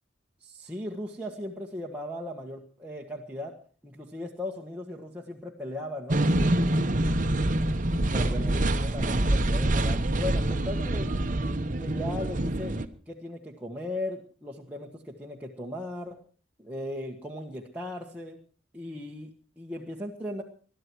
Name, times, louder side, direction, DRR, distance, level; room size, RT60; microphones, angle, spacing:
voice 1, 0.4-3.6 3.8-6.6 8.1-11.1 11.8-12.8 13.1-16.2 16.6-18.4 18.7-20.4, left 1 dB, 10° right, -2 dB, 1.5 m, -37 dB
sound 1, 6.1-12.9, right 1 dB, 45° right, 1.0 m, -26 dB
21.0 x 12.5 x 4.7 m, 0.40 s
head